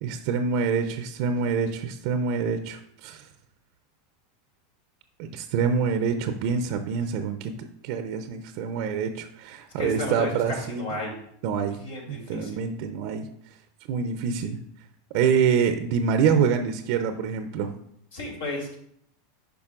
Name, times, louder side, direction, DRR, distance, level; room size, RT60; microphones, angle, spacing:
voice 1, 0.0-3.3 5.2-10.9 11.4-11.8 12.1-13.3 13.9-14.6 15.1-17.7, right 6 dB, 60° right, 8 dB, 0.6 m, -26 dB
voice 2, 9.8-11.2 11.8-12.5 18.1-18.8, left 2 dB, 75° left, -1 dB, 2.8 m, -33 dB
10.5 x 5.2 x 2.5 m, 0.72 s
hypercardioid pair, 90°, 0 cm